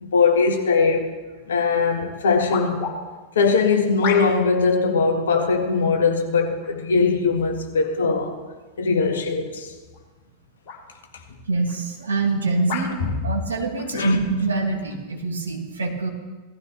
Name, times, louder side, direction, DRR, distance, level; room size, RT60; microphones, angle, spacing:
voice 1, 0.0-1.1 1.5-2.8 3.4-8.4 8.8-9.7 13.9-14.2, left 4 dB, 65° left, 4 dB, 1.7 m, -20 dB
sound 1, 2.5-3.0 4.0-4.5 5.3-5.6 6.6-7.0 7.8-7.9 9.8-10.1 10.7-10.8 11.7-11.8 12.7-12.9 13.8-13.9, left 6 dB, 45° left, 2.9 m, -31 dB
voice 2, 11.5-13.0 13.2-16.1, right 3 dB, 70° right, 1 dB, 2.1 m, -24 dB
17.5 x 13.0 x 3.2 m, 1.3 s
figure-of-eight pair, 90°, 0 cm